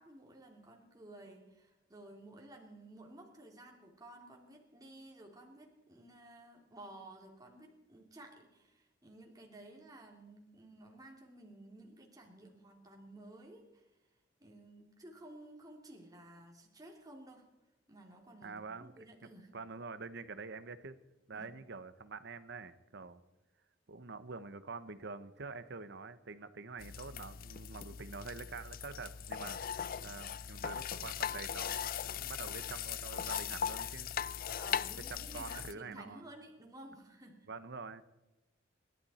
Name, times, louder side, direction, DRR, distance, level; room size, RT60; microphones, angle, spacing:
voice 1, 0.0-13.9 14.4-17.4 17.9-19.5 21.3-21.5 34.5-37.5, right 1 dB, 20° right, 1 dB, 2.8 m, -54 dB
voice 2, 18.4-18.9 19.2-21.0 21.3-23.2 23.9-34.1 35.1-36.2 37.5-38.0, right 4 dB, 65° right, 13 dB, 1.0 m, -46 dB
sound 1, 26.8-35.7, left 8 dB, 50° left, 0.4 m, -39 dB
27.0 x 12.0 x 4.3 m, 1.0 s
head